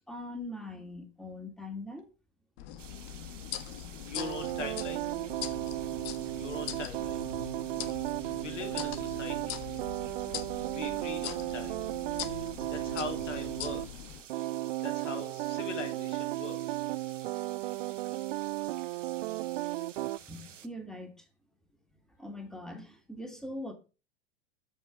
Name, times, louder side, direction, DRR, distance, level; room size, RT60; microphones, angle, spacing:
voice 1, 0.1-2.1 20.3-21.1 22.2-23.7, left 1 dB, ahead, 2.7 m, -41 dB
sound 1, 2.6-14.2, left 11 dB, 40° left, 1.4 m, -42 dB
sound 2, 2.8-20.7, right 9 dB, 70° right, 1.4 m, -52 dB
voice 2, 4.1-5.1 6.4-7.2 8.4-9.6 10.7-11.8 12.7-13.8 14.8-16.8, left 4 dB, 70° left, 3.3 m, -41 dB
sound 3, 4.2-13.9 14.3-20.2, right 17 dB, 50° right, 0.4 m, -35 dB
13.0 x 5.6 x 5.9 m
figure-of-eight pair, 90°, 38 cm